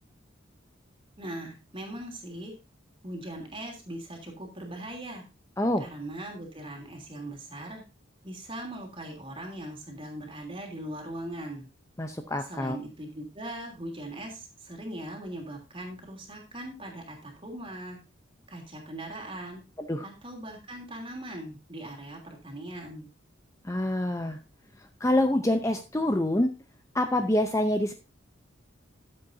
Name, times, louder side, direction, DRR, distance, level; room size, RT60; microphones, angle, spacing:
voice 1, 1.2-2.5 3.0-5.2 5.8-7.8 8.2-11.7 12.4-18.0 18.5-19.6 20.0-23.1, right 1 dB, 25° right, 1 dB, 3.1 m, -40 dB
voice 2, 12.0-12.8 19.9-20.0 23.6-24.4 25.0-26.5 26.9-27.9, left 1 dB, 15° left, 6 dB, 0.7 m, -26 dB
13.0 x 7.8 x 2.7 m, 0.30 s
head